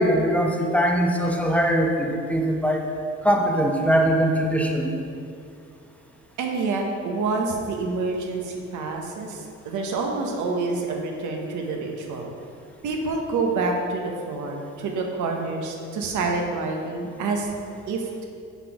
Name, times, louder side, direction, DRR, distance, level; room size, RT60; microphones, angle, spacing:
voice 1, 0.0-2.9 3.2-4.9, equal, 5° left, 0 dB, 0.7 m, -21 dB
voice 2, 6.4-12.3 12.8-17.5 17.9-18.2, right 3 dB, 80° right, 1 dB, 0.9 m, -27 dB
5.7 x 4.1 x 5.8 m, 2.4 s
cardioid pair, 90°, 30 cm